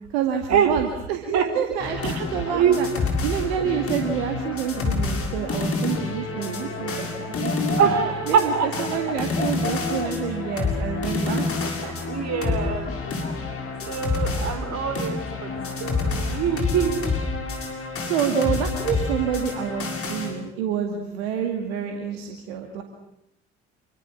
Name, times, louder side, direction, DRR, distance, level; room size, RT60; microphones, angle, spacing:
voice 1, 0.1-2.9 3.2-8.0 8.3-11.9 12.5-12.6 18.0-22.8, right 8 dB, 75° right, 5 dB, 2.3 m, -28 dB
sound 1, 1.8-20.3, left 3 dB, 45° left, 7.0 m, -28 dB
voice 2, 2.0-2.8 3.6-3.7 7.8-9.0 12.1-12.9 13.9-17.0, right 7 dB, 55° right, 10 dB, 4.5 m, -24 dB
sound 2, 6.3-16.5, left 2 dB, 30° left, 3.3 m, -37 dB
28.0 x 24.5 x 7.2 m, 0.84 s
figure-of-eight pair, 45°, 31 cm